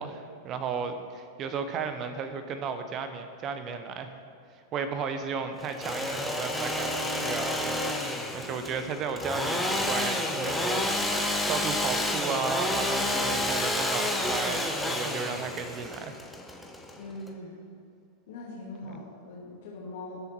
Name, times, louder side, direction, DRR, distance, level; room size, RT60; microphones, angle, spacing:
voice 1, 0.0-4.1 4.7-8.0 8.3-16.1, right 5 dB, 30° right, 8 dB, 1.1 m, -34 dB
Engine / Sawing, 5.6-17.3, left 1 dB, 5° left, 1.3 m, -30 dB
voice 2, 17.0-17.6 18.3-20.2, left 2 dB, 55° left, -7 dB, 2.8 m, -41 dB
19.5 x 8.0 x 4.5 m, 2.6 s
figure-of-eight pair, 90°, 0 cm